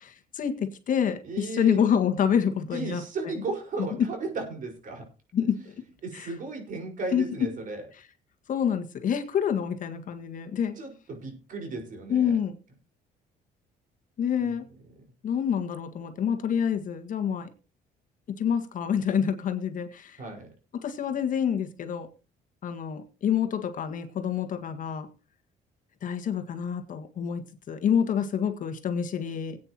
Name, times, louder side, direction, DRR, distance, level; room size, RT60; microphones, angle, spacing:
voice 1, 0.0-3.0 4.0-4.1 5.3-5.8 6.1-6.3 7.1-7.5 8.5-10.8 12.1-12.5 14.2-14.7 15.2-17.5 18.3-20.2 20.7-22.1 22.6-25.1 26.0-29.6, left 8 dB, 50° left, 7 dB, 1.7 m, -27 dB
voice 2, 1.2-1.8 2.7-5.1 6.0-7.9 10.7-12.4 14.4-14.6 20.2-20.5, right 3 dB, 50° right, 2 dB, 5.0 m, -35 dB
19.0 x 9.0 x 3.0 m, 0.32 s
cardioid pair, 110°, 17 cm